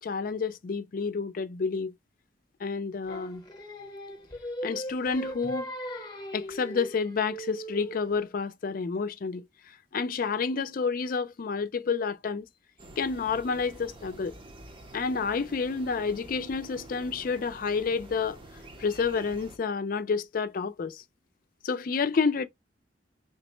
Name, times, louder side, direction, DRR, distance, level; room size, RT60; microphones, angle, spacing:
voice 1, 0.0-1.9 2.6-3.4 4.6-5.7 6.3-9.4 9.9-12.4 13.0-14.3 14.9-18.4 18.8-21.0 21.6-22.4, left 5 dB, 50° left, 0.4 m, -29 dB
Singing, 3.1-8.3, equal, 25° left, 0.8 m, -39 dB
sound 1, 12.8-19.6, right 1 dB, 30° right, 0.6 m, -48 dB
3.4 x 2.1 x 4.3 m
head